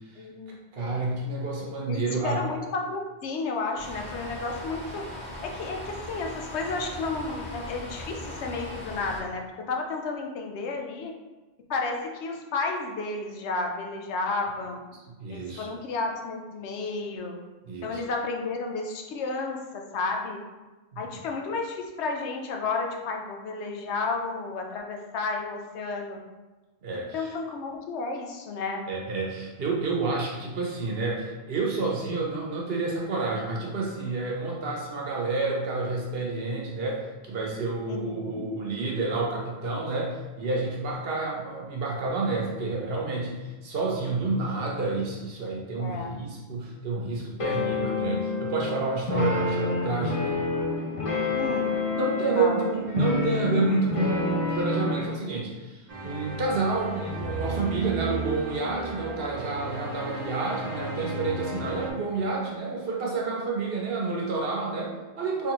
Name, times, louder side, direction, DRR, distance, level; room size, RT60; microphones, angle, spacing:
voice 1, 0.2-1.0 1.9-5.1 5.4-11.1 11.7-14.8 15.3-17.4 17.8-20.4 21.0-26.2 27.1-28.9 37.8-38.5 45.8-46.1 51.3-51.7 52.4-52.7, left 3 dB, 80° left, 2 dB, 0.9 m, -32 dB
voice 2, 0.7-2.5 15.1-15.7 17.6-18.0 20.9-21.0 26.8-27.3 28.9-50.4 51.9-65.5, right 3 dB, 65° right, -2 dB, 1.0 m, -29 dB
sound 1, 3.8-9.2, left 1 dB, 55° left, 1.4 m, -39 dB
sound 2, 47.4-55.1, left 3 dB, 40° left, 0.6 m, -28 dB
sound 3, 55.9-61.9, right 2 dB, 45° right, 0.6 m, -34 dB
3.5 x 3.3 x 2.9 m, 1.2 s
omnidirectional pair, 1.1 m